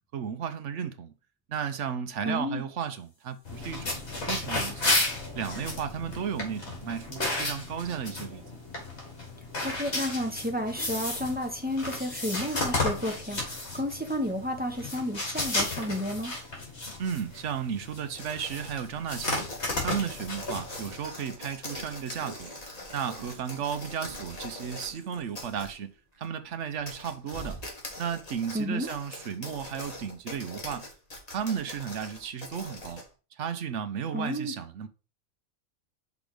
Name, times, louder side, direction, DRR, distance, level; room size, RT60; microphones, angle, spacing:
voice 1, 0.1-1.1 1.5-4.9 5.4-8.4 17.0-19.5 19.8-22.5 22.9-25.9 26.2-27.6 28.0-30.9 31.3-33.0 33.4-34.9, right 7 dB, 65° right, 1.0 m, -34 dB
voice 2, 2.2-2.6 9.6-16.3 28.5-28.9 34.1-34.5, left 1 dB, 5° right, 1.0 m, -31 dB
sound 1, 3.4-21.0, left 2 dB, 50° left, 2.7 m, -33 dB
sound 2, 18.1-24.9 25.3-25.7 26.2-26.3 26.7-33.1, left 2 dB, 30° left, 1.7 m, -43 dB
sound 3, 21.7-22.8 23.1-25.9 26.1-26.3 27.3-27.7 28.8-28.9, right 2 dB, 30° right, 1.3 m, -47 dB
5.8 x 4.1 x 4.9 m
omnidirectional pair, 1.4 m